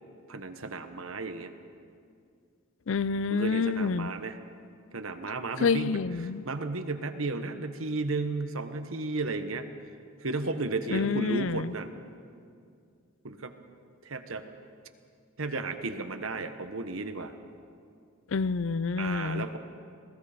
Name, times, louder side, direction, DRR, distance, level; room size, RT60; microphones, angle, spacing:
voice 1, 0.3-1.5 3.3-4.4 4.9-6.0 6.4-9.7 10.2-11.9 13.2-13.5 14.0-14.4 15.4-17.3 19.0-19.6, right 3 dB, 85° right, 8 dB, 1.3 m, -33 dB
voice 2, 2.9-4.1 5.6-6.4 10.9-11.7 18.3-19.5, left 5 dB, 70° left, 17 dB, 0.5 m, -28 dB
27.5 x 18.5 x 5.2 m, 2.3 s
head